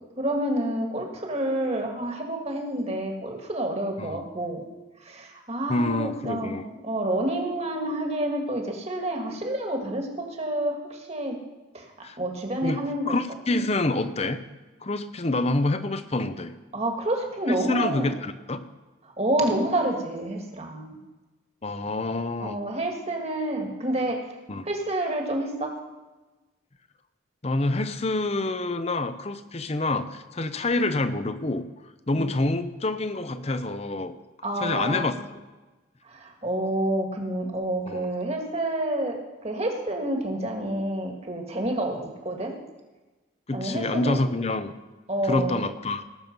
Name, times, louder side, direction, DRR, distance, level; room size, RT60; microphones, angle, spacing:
voice 1, 0.2-4.6 5.0-11.4 11.7-11.9 12.2-13.1 16.7-18.1 19.2-21.0 22.4-24.2 24.6-25.7 32.1-32.3 34.4-35.1 36.0-42.5 43.5-44.2 45.1-45.6, right 1 dB, 30° right, 2 dB, 1.8 m, -28 dB
voice 2, 5.7-6.7 12.0-12.2 12.6-12.8 13.1-14.4 14.8-16.5 17.7-18.7 21.6-22.6 24.5-24.7 27.4-31.7 32.1-34.1 34.6-35.3 37.9-38.1 43.5-44.8 45.3-46.0, left 2 dB, 30° left, 11 dB, 0.7 m, -27 dB
18.5 x 7.0 x 5.3 m, 1.2 s
head